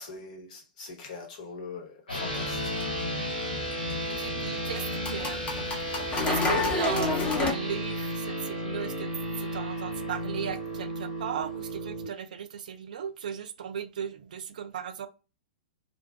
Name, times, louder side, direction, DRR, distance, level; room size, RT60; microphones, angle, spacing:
voice 1, 0.0-2.7, left 4 dB, 55° left, 1.0 m, -42 dB
sound 1, 2.1-12.0, equal, 85° left, 1.5 m, -33 dB
sound 2, 2.3-7.5, left 3 dB, 25° left, 0.8 m, -31 dB
voice 2, 4.1-5.7 6.2-9.1 9.4-15.1, right 8 dB, 65° right, 0.4 m, -36 dB
2.5 x 2.4 x 2.2 m
figure-of-eight pair, 115°, 5 cm